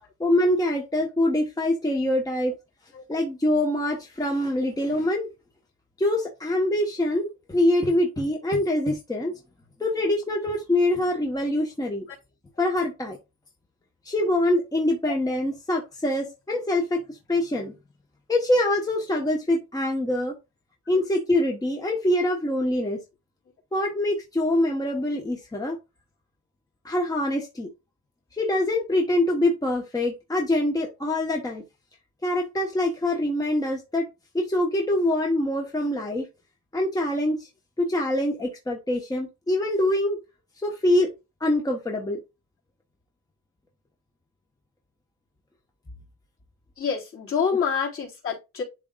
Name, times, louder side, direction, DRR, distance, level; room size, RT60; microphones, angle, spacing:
voice 1, 0.2-2.5 3.1-5.3 6.0-9.3 9.8-12.1 12.6-13.2 14.0-17.7 18.3-20.3 20.9-23.0 23.7-25.8 26.8-27.7 28.3-31.6 32.2-34.1 34.3-36.3 36.7-37.5 37.8-40.2 40.6-41.1 41.4-42.2, left 1 dB, 10° left, 1.2 m, -24 dB
voice 2, 46.8-48.6, left 6 dB, 45° left, 3.9 m, -27 dB
11.0 x 3.9 x 2.4 m
wide cardioid pair, 170°, 31 cm